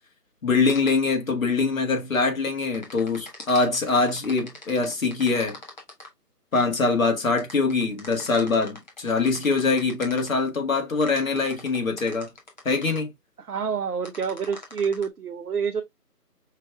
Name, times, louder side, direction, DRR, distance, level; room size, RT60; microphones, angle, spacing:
voice 1, 0.4-5.6 6.5-12.3 12.6-13.1, left 4 dB, 55° left, 1.6 m, -23 dB
sound 1, 0.7-0.9 2.7-6.1 7.4-10.4 11.0-13.0 14.0-15.1, left 1 dB, 25° left, 1.0 m, -42 dB
voice 2, 13.4-15.8, right 6 dB, 65° right, 0.7 m, -28 dB
5.6 x 3.4 x 2.2 m
figure-of-eight pair, 160°, 49 cm